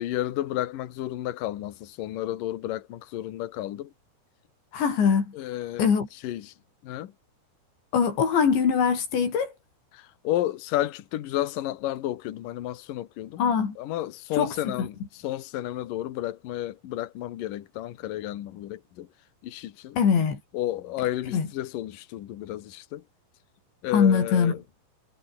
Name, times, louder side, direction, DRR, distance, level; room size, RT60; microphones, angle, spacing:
voice 1, 0.0-3.9 5.4-6.0 6.2-6.5 6.8-7.1 9.9-19.1 19.4-20.0 20.5-23.0 23.8-24.6, left 14 dB, 60° left, 2.8 m, -32 dB
voice 2, 4.7-5.3 5.8-6.1 7.9-9.5 13.4-13.8 14.3-14.9 20.0-20.4 21.3-21.5 23.9-24.6, left 6 dB, 85° left, 7.1 m, -22 dB
omnidirectional pair, 5.0 m